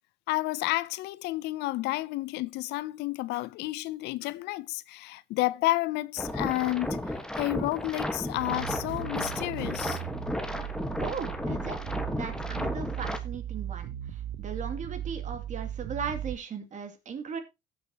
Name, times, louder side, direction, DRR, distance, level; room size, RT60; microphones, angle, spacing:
voice 1, 0.3-10.0, left 18 dB, 85° left, 0.5 m, -31 dB
sound 1, 6.2-13.2, left 1 dB, 5° left, 1.4 m, -34 dB
sound 2, 8.3-16.3, right 11 dB, 85° right, 0.8 m, -37 dB
voice 2, 11.0-11.8 12.0-17.4, right 6 dB, 45° right, 2.5 m, -37 dB
17.0 x 6.9 x 2.9 m
cardioid pair, 110°, 17 cm